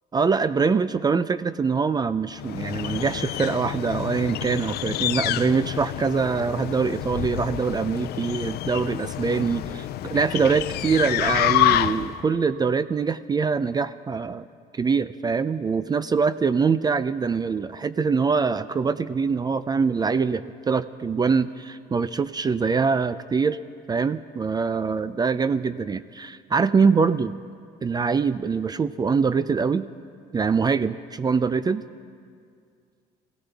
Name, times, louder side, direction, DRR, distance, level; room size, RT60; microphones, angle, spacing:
voice 1, 0.1-14.5 14.7-23.6 23.9-27.3 27.8-29.9 30.3-31.8, right 5 dB, 25° right, 14 dB, 0.4 m, -24 dB
sound 1, 2.4-12.2, left 13 dB, 70° left, 0.5 m, -28 dB
22.0 x 16.5 x 3.4 m, 2.2 s
cardioid pair, 110°, 17 cm